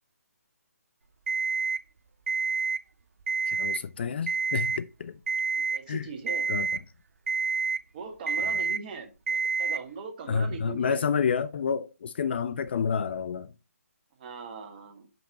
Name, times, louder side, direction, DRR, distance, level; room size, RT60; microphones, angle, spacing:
Alarm, 1.3-1.8 2.3-2.8 3.2-3.8 4.3-4.8 5.3-5.8 6.3-6.8 7.3-7.8 8.3-8.8 9.3-9.8, right 5 dB, 60° right, 0.5 m, -28 dB
voice 1, 3.5-5.2 5.9-6.1 6.5-6.7 8.4-8.5 10.3-13.5, left 6 dB, 40° left, 0.3 m, -29 dB
voice 2, 5.7-6.5 7.9-11.0 14.2-15.1, right 5 dB, 35° right, 1.3 m, -40 dB
5.3 x 4.2 x 5.1 m
figure-of-eight pair, 150°, 8 cm